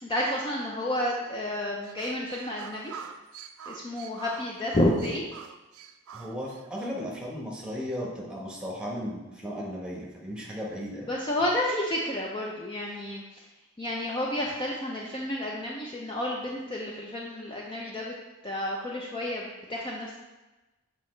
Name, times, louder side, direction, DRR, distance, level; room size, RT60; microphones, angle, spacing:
voice 1, 0.0-3.0 3.7-5.3 11.1-13.5 13.8-18.1 18.4-20.2, left 1 dB, 20° left, -2 dB, 0.5 m, -30 dB
sound 1, 1.8-6.9, right 6 dB, 80° right, 0.4 m, -45 dB
voice 2, 6.1-11.1, equal, 5° right, -3 dB, 1.1 m, -35 dB
6.7 x 5.0 x 3.2 m, 1.1 s
head